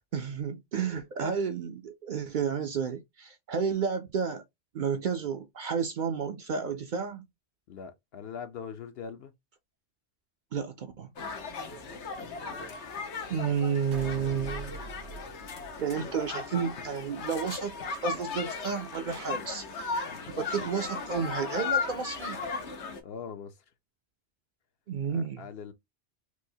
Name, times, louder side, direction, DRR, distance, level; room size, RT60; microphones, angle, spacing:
voice 1, 0.1-4.4 4.7-7.3 10.5-11.1 13.3-14.8 15.8-17.7 18.0-19.7 20.3-22.4 24.9-25.5, right 6 dB, 55° right, 0.6 m, -31 dB
voice 2, 7.7-9.3 20.1-20.3 23.0-23.6 25.1-25.7, left 7 dB, 65° left, 0.8 m, -42 dB
sound 1, 11.2-23.0, left 5 dB, 85° left, 1.1 m, -36 dB
sound 2, 13.9-16.5, right 2 dB, 90° right, 1.2 m, -44 dB
4.6 x 2.1 x 2.7 m
omnidirectional pair, 1.1 m